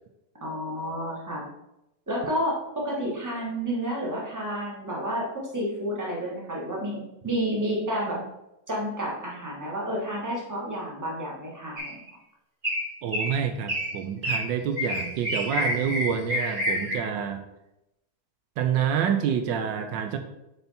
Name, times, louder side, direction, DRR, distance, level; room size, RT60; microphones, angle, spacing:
voice 1, 0.4-1.4 2.1-8.2 8.7-12.0, equal, 10° right, -3 dB, 1.3 m, -30 dB
sound 1, 11.8-12.1 12.6-12.9 13.1-13.3 13.7-13.9 14.2-14.4 14.8-17.0, left 1 dB, 30° right, 2.5 m, -28 dB
voice 2, 13.0-17.4 18.6-20.2, right 8 dB, 85° right, 7 dB, 1.3 m, -27 dB
6.8 x 4.3 x 4.2 m, 0.89 s
omnidirectional pair, 2.0 m